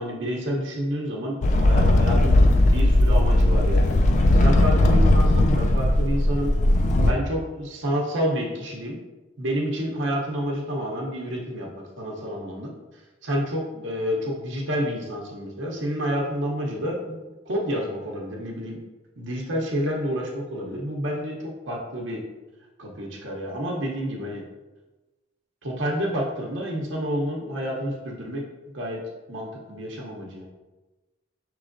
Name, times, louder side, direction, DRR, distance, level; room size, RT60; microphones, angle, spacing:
voice 1, 0.0-3.9 4.3-6.5 7.0-9.0 9.4-12.7 13.2-17.2 17.4-18.8 19.2-21.4 21.7-22.2 22.8-24.4 25.6-28.4 28.7-29.0 29.3-30.5, equal, 65° right, -2 dB, 0.7 m, -29 dB
sound 1, 1.4-7.1, left 1 dB, 40° left, 0.3 m, -18 dB
5.9 x 3.1 x 2.5 m, 1.2 s
head